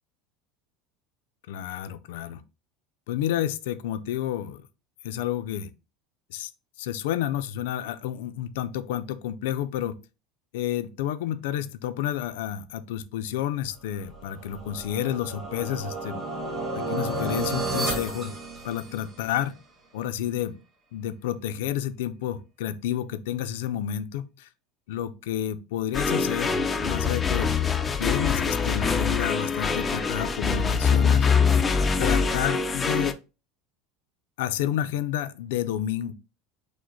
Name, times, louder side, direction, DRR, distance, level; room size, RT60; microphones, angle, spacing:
voice 1, 1.5-2.4 3.1-4.6 5.0-5.7 6.3-6.5 6.8-10.0 10.5-16.2 16.7-18.4 18.6-19.5 19.9-20.6 20.9-24.5 24.9-27.5 28.0-31.3 32.0-33.2 34.4-36.1, left 11 dB, 80° left, 0.4 m, -30 dB
sound 1, 14.1-19.3, right 2 dB, 25° right, 1.7 m, -32 dB
sound 2, 25.9-33.1, left 5 dB, 20° left, 0.4 m, -24 dB
5.0 x 2.1 x 3.9 m
supercardioid pair, 130°, 0 cm